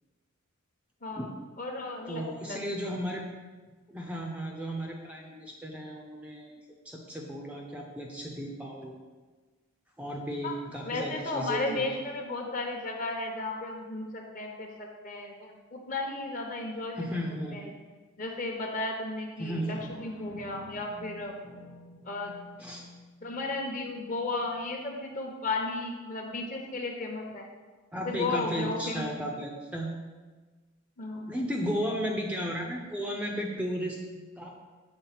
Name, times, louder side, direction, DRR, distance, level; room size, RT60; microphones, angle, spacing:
voice 1, 1.6-2.6 10.4-10.6 10.8-17.2 17.5-17.7 18.2-21.3 22.0-22.4 23.2-27.5 28.0-29.1 31.0-31.3, left 2 dB, 40° left, 2 dB, 0.9 m, -34 dB
voice 2, 2.1-3.3 3.9-6.6 6.8-9.0 10.0-11.9 17.0-17.6 19.4-19.8 22.6-22.8 27.9-29.9 31.3-34.5, equal, 5° right, 0 dB, 0.5 m, -34 dB
sound 1, 19.6-24.7 25.1-25.2, left 1 dB, 70° left, 1.2 m, -50 dB
7.1 x 3.6 x 5.8 m, 1.3 s
head